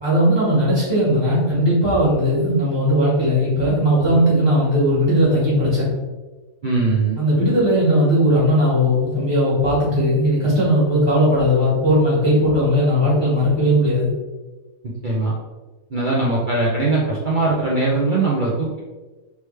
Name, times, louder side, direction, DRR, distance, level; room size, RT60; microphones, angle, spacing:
voice 1, 0.0-5.9 7.2-14.1, equal, 15° left, -9 dB, 1.3 m, -18 dB
voice 2, 6.6-7.2 15.0-15.3 15.9-18.8, right 3 dB, 75° right, -5 dB, 0.4 m, -20 dB
3.3 x 3.2 x 3.3 m, 1.2 s
omnidirectional pair, 1.7 m